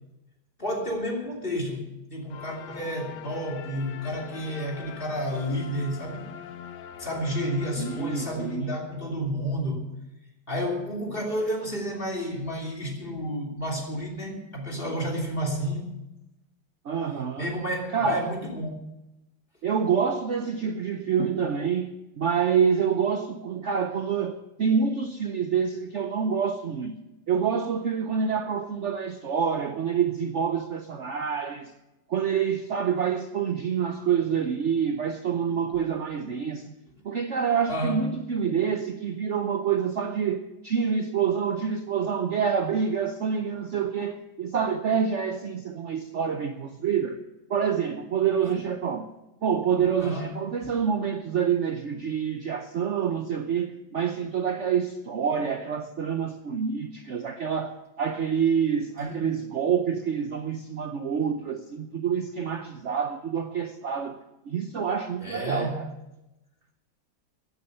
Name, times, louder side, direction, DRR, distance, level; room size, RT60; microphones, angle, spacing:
voice 1, 0.6-6.3 7.0-9.8 10.5-15.8 17.4-18.8 37.7-38.0 48.4-48.5 50.0-50.3 59.0-59.2 65.2-65.8, equal, 30° left, 1 dB, 3.2 m, -31 dB
sound 1, 2.3-8.9, left 9 dB, 75° left, 1.5 m, -43 dB
voice 2, 7.8-8.8 16.8-17.5 17.9-18.3 19.6-27.0 27.3-31.7 32.1-36.7 37.0-47.2 47.5-49.1 49.4-64.2 64.5-65.8, right 7 dB, 55° right, 6 dB, 0.9 m, -27 dB
15.0 x 9.9 x 6.7 m, 0.96 s
omnidirectional pair, 1.9 m